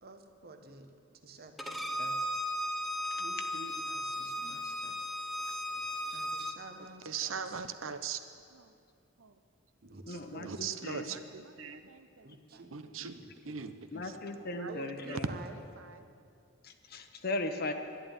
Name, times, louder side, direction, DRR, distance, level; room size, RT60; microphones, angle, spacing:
voice 1, 0.0-0.9 1.2-2.3 3.2-5.0 6.1-7.6 9.8-10.6 12.2-12.7 13.0-13.6 14.7-15.6, right 3 dB, 50° right, 6 dB, 1.1 m, -50 dB
Bowed string instrument, 1.6-6.5, left 1 dB, ahead, 0.8 m, -36 dB
voice 2, 7.1-8.2 8.5-8.7 9.2-9.3 10.4-12.3 12.7-13.2 13.5-14.0 14.6-14.7 15.1-15.2, right 6 dB, 80° right, 10 dB, 0.8 m, -39 dB
voice 3, 10.1-11.1 13.9-15.3 16.6-17.7, left 2 dB, 50° left, 6 dB, 1.0 m, -38 dB
11.5 x 11.0 x 9.1 m, 2.4 s
head